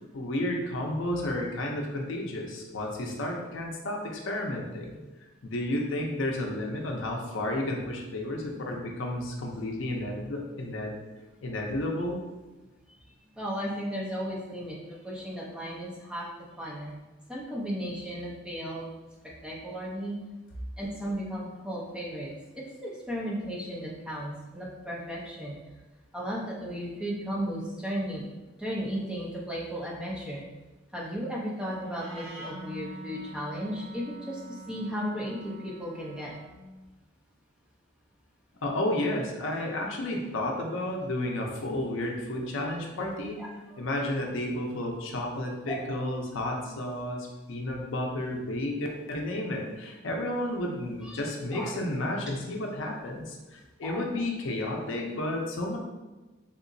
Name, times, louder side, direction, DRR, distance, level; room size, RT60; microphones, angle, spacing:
voice 1, 0.1-5.0 5.4-11.0 11.4-12.2 38.6-43.4 43.8-55.8, left 1 dB, 65° left, 0 dB, 0.5 m, -32 dB
voice 2, 13.4-16.9 17.3-18.9 19.4-20.1 20.8-25.6 26.1-28.2 28.6-30.4 30.9-36.3 43.4-43.9 45.7-45.9 51.0-51.2 51.5-51.8 53.8-54.0, equal, 5° right, -6 dB, 0.5 m, -35 dB
Wind instrument woodwind instrument, 31.8-36.6, right 1 dB, 75° right, 0.9 m, -44 dB
3.6 x 2.9 x 2.6 m, 1.2 s
head